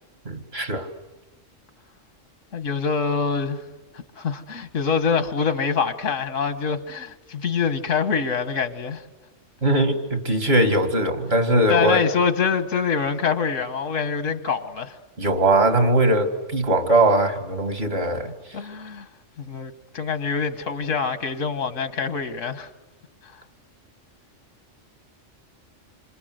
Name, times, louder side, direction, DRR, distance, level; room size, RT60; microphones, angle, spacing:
voice 1, 0.3-0.9 9.6-12.0 15.2-18.3, right 1 dB, 55° right, 2.6 m, -20 dB
voice 2, 2.5-3.6 3.9-9.0 11.7-15.0 18.5-19.1 19.4-22.7, left 6 dB, 90° left, 1.7 m, -25 dB
28.0 x 26.0 x 7.9 m
omnidirectional pair, 1.3 m